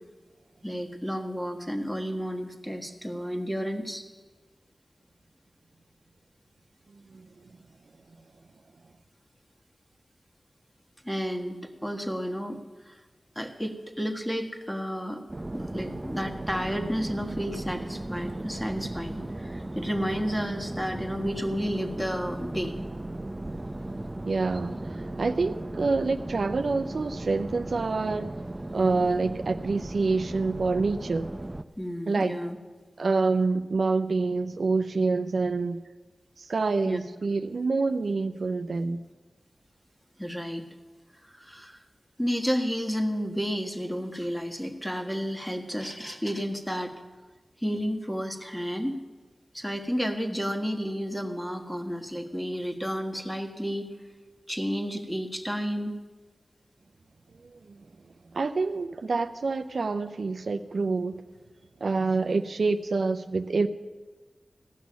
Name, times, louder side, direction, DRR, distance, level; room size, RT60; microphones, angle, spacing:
voice 1, 0.6-4.0 11.0-12.6 12.8-13.0 13.3-15.2 15.5-22.7 31.8-32.6 36.8-37.0 40.2-40.7 41.3-41.8 42.2-46.9 47.6-48.9 49.5-53.9 54.5-56.0, equal, 5° left, 3 dB, 1.5 m, -31 dB
sound 1, 15.3-31.6, right 1 dB, 30° right, 0.6 m, -36 dB
voice 2, 24.2-28.3 28.7-31.3 32.1-32.3 33.0-35.8 36.4-39.0 57.4-57.8 58.3-61.2 61.8-63.7, right 3 dB, 80° right, 9 dB, 0.5 m, -27 dB
15.5 x 6.2 x 9.4 m, 1.3 s
cardioid pair, 45°, 0 cm